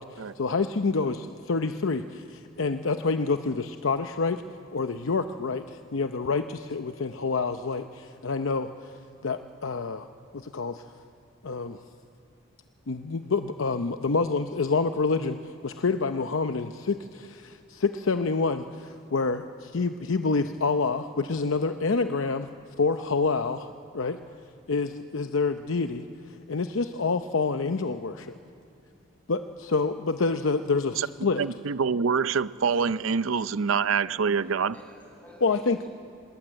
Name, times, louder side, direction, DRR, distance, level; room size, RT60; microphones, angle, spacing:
voice 1, 0.0-4.4 4.7-8.7 9.2-10.1 10.3-10.8 11.4-11.8 12.9-22.5 22.8-24.2 24.7-26.0 26.5-28.3 29.3-31.4 35.4-35.8, left 4 dB, 85° left, 8 dB, 0.7 m, -27 dB
voice 2, 31.4-34.7, right 5 dB, 90° right, 16 dB, 0.6 m, -25 dB
voice 3, 34.4-35.9, left 1 dB, 5° left, -3 dB, 7.2 m, -52 dB
22.5 x 21.0 x 8.9 m, 2.6 s
head